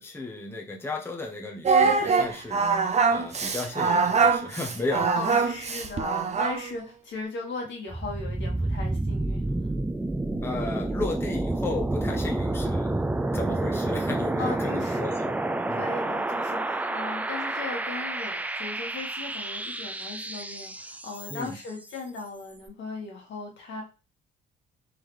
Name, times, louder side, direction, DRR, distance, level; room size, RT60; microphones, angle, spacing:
voice 1, 0.0-2.6 3.1-5.1 10.4-12.9 13.3-15.3 15.6-15.9 21.3-21.6, left 2 dB, 10° left, 1 dB, 0.7 m, -34 dB
Singing, 1.6-6.7, right 5 dB, 35° right, 0.7 m, -23 dB
voice 2, 5.1-9.7 14.4-15.0 15.7-23.8, left 3 dB, 70° left, 0 dB, 1.6 m, -37 dB
sound 1, 7.9-21.7, right 2 dB, 10° right, 0.3 m, -29 dB
3.8 x 3.3 x 3.1 m, 0.31 s
cardioid pair, 90°, 20 cm